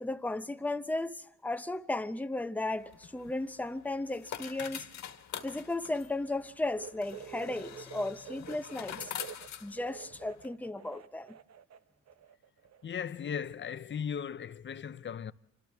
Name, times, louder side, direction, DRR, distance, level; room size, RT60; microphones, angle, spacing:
voice 1, 0.0-4.8 5.4-9.1 9.6-11.4, left 2 dB, 5° left, 0.8 m, -35 dB
sound 1, 2.8-10.5, left 8 dB, 65° left, 1.7 m, -45 dB
sound 2, 6.7-11.8 12.1-13.1 13.3-13.5 14.5-14.6, right 8 dB, 60° right, 0.9 m, -48 dB
voice 2, 12.8-15.3, left 7 dB, 40° left, 0.7 m, -37 dB
28.0 x 26.0 x 3.6 m
cardioid pair, 90°, 30 cm